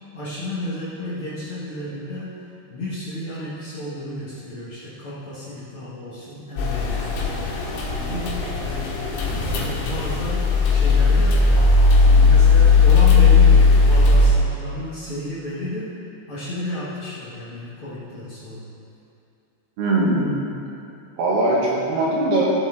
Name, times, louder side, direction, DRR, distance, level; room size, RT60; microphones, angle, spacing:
voice 1, 0.1-2.4 2.7-9.0 9.4-11.4 11.9-15.9 16.3-18.7, left 1 dB, 65° left, -9 dB, 1.3 m, -32 dB
sound 1, 6.6-14.3, left 4 dB, 80° left, 3.9 m, -16 dB
voice 2, 19.8-20.4 21.2-22.5, right 2 dB, 65° right, -5 dB, 3.7 m, -20 dB
17.0 x 7.8 x 3.8 m, 2.6 s
omnidirectional pair, 5.3 m